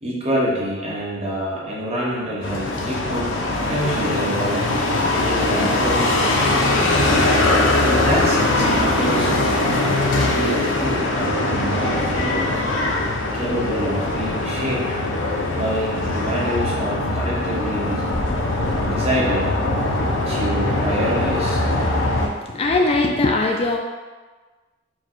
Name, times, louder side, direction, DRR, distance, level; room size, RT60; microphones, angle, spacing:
voice 1, 0.0-3.3 3.6-4.7 5.1-7.0 7.8-12.6 13.3-15.0 15.5-18.0 18.8-19.5 20.2-21.7, equal, 35° right, -5 dB, 1.0 m, -26 dB
sound 1, 2.4-22.3, left 2 dB, 75° left, 0.6 m, -21 dB
voice 2, 22.2-23.8, left 2 dB, 30° left, 2 dB, 0.3 m, -20 dB
4.6 x 2.2 x 4.4 m, 1.3 s
head